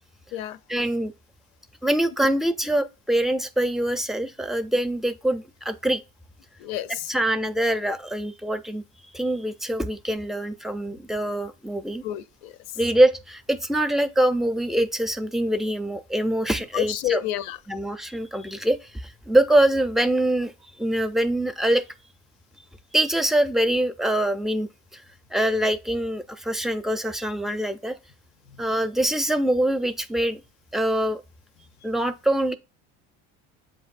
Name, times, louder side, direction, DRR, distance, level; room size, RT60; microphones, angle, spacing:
voice 1, 0.7-1.1 1.8-6.0 7.1-8.8 9.1-12.0 12.8-17.2 17.7-20.5 20.8-21.8 22.9-25.0 25.3-28.0 28.6-30.4 30.7-31.2 31.8-32.5, right 1 dB, ahead, 0.4 m, -24 dB
voice 2, 6.6-7.1 12.0-12.5 16.7-17.6, left 12 dB, 85° left, 0.5 m, -29 dB
7.7 x 2.6 x 2.5 m
supercardioid pair, 95°, 33 cm